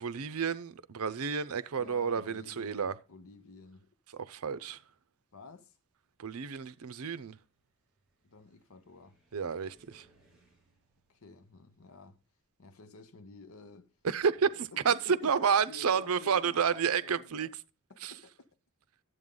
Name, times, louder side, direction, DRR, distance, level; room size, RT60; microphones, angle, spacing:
voice 1, 0.0-2.9 4.1-4.8 6.2-7.4 9.3-10.1 14.0-17.5 18.0-18.1, right 6 dB, 75° right, 0.6 m, -30 dB
voice 2, 1.8-3.9 5.3-5.8 8.2-9.2 11.1-12.2 12.6-13.9 14.4-17.5 17.9-18.5, left 3 dB, 65° left, 0.8 m, -51 dB
Car, 5.9-14.1, right 1 dB, 5° right, 4.4 m, -70 dB
11.0 x 7.9 x 3.8 m
head